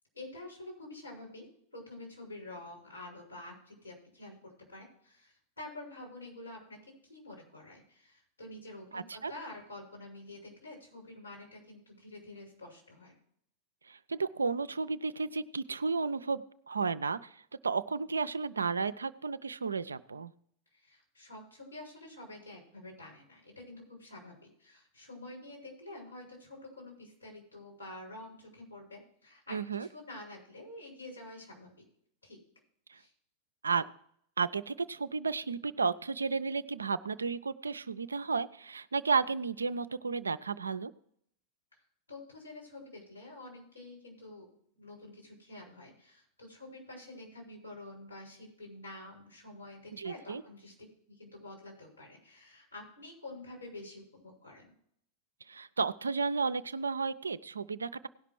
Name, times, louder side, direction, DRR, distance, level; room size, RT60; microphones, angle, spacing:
voice 1, 0.1-1.5 1.7-13.2 20.7-24.3 24.6-31.8 32.2-32.4 32.9-33.1 42.1-44.5 44.7-50.7 51.1-54.7, left 2 dB, 85° left, -3 dB, 5.8 m, -48 dB
voice 2, 8.9-9.3 13.9-20.3 29.5-29.9 32.9-33.0 33.6-33.8 34.4-40.9 49.9-50.4 55.5-58.1, right 4 dB, 75° right, 14 dB, 0.4 m, -33 dB
17.5 x 5.8 x 4.7 m, 0.68 s
figure-of-eight pair, 90°, 0 cm